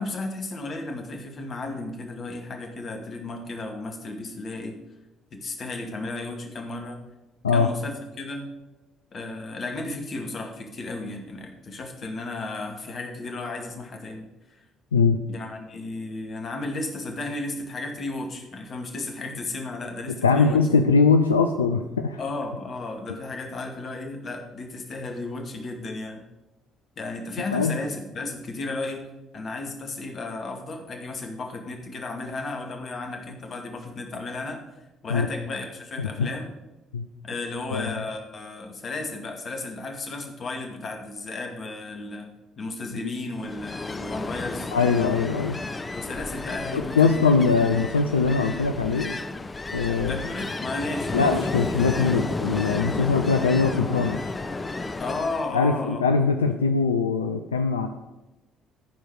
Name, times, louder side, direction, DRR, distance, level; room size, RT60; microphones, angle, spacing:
voice 1, 0.0-4.8 5.3-7.0 7.5-8.5 9.1-14.3 14.5-14.6 15.3-20.6 22.2-26.2 27.0-29.1 29.3-34.6 35.0-36.5 37.2-44.7 45.9-47.2 50.0-51.3 52.9-53.2 55.0-56.0, left 2 dB, 45° left, 3 dB, 2.2 m, -34 dB
voice 2, 20.2-22.2 27.5-27.8 35.1-35.3 36.0-36.3 36.9-37.0 37.7-38.0 43.0-43.1 44.7-45.6 46.7-49.1 49.7-50.2 51.1-54.2 55.5-57.9, left 4 dB, 85° left, 6 dB, 0.5 m, -22 dB
Ocean, 43.3-55.5, left 3 dB, 25° left, 0.8 m, -32 dB
14.0 x 4.7 x 6.4 m, 1.0 s
hypercardioid pair, 50°, 0 cm